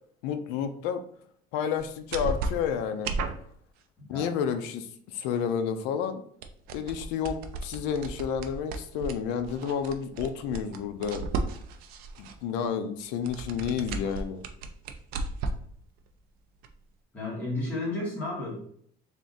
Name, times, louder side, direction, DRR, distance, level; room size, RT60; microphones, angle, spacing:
voice 1, 0.2-1.0 1.5-3.1 4.1-6.2 6.7-11.3 12.2-14.4, left 7 dB, 75° left, 9 dB, 0.5 m, -30 dB
sound 1, 1.8-1.9 2.1-3.5 6.4-12.4 13.1-15.7 16.1-16.2 16.6-16.7, right 3 dB, 55° right, 0.5 m, -34 dB
voice 2, 17.1-18.6, left 2 dB, 10° left, -7 dB, 1.6 m, -32 dB
3.5 x 2.6 x 3.9 m, 0.64 s
cardioid pair, 165°, 19 cm